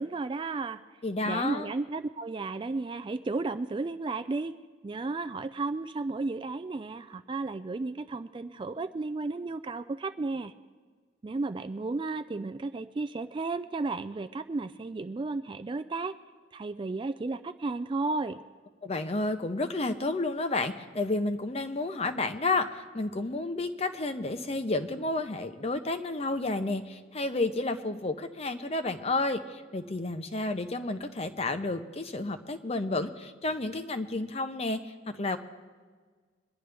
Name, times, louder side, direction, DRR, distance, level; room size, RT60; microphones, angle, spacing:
voice 1, 0.0-0.8 1.3-4.5 4.8-10.5 11.2-16.1 16.5-18.4, right 3 dB, 25° right, 11 dB, 0.3 m, -33 dB
voice 2, 1.0-1.7 18.8-35.4, left 2 dB, 30° left, 9 dB, 0.7 m, -31 dB
22.5 x 10.5 x 3.4 m, 1.5 s
head